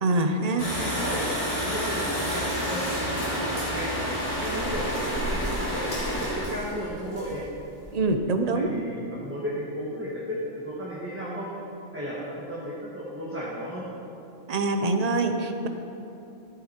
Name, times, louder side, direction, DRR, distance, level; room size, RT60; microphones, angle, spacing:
voice 1, 0.0-0.6 7.9-8.7 14.5-15.7, right 2 dB, 40° right, 6 dB, 0.6 m, -24 dB
sound 1, 0.6-7.9, equal, 25° left, 3.1 m, -29 dB
voice 2, 0.8-1.2 1.6-2.8 3.1-3.9 4.4-5.9 6.2-7.4 8.5-11.5 11.9-13.9, equal, 10° right, -7 dB, 1.4 m, -34 dB
13.0 x 8.8 x 4.4 m, 2.8 s
omnidirectional pair, 1.5 m